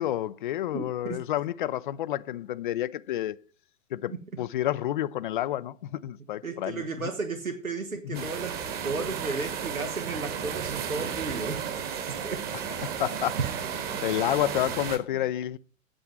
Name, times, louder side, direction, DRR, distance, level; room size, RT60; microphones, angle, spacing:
voice 1, 0.0-3.4 3.9-6.8 8.1-8.3 12.8-13.4 14.0-15.6, left 13 dB, 40° left, 0.5 m, -29 dB
voice 2, 0.7-1.2 6.4-12.5 12.8-13.0 13.4-13.5 13.9-14.0 14.5-14.7 15.1-15.2, right 4 dB, 85° right, 1.3 m, -34 dB
sound 1, 8.1-15.0, right 7 dB, 25° right, 1.5 m, -33 dB
8.8 x 7.7 x 7.2 m
figure-of-eight pair, 110°, 40 cm